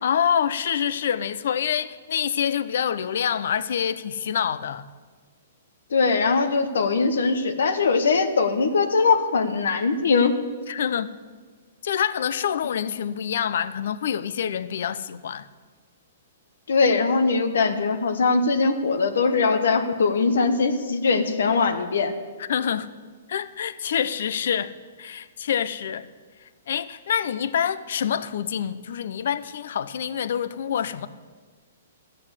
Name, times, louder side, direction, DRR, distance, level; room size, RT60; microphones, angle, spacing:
voice 1, 0.0-4.9 10.7-11.1 11.8-15.5 22.4-22.9 23.3-26.1 26.4-31.1, left 8 dB, 65° left, 0.6 m, -26 dB
voice 2, 5.9-10.3 16.7-22.1, left 4 dB, 85° left, 1.1 m, -21 dB
13.5 x 7.7 x 8.0 m
hypercardioid pair, 160°, 0 cm